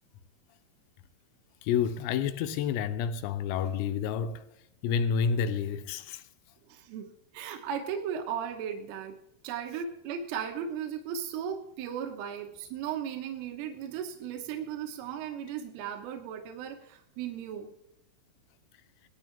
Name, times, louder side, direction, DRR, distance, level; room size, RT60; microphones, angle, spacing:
voice 1, 1.6-4.5 4.8-6.3, left 7 dB, 85° left, 3.6 m, -29 dB
voice 2, 6.7-9.2 9.4-17.7, right 8 dB, 80° right, 3.7 m, -36 dB
18.0 x 13.0 x 3.5 m
omnidirectional pair, 6.0 m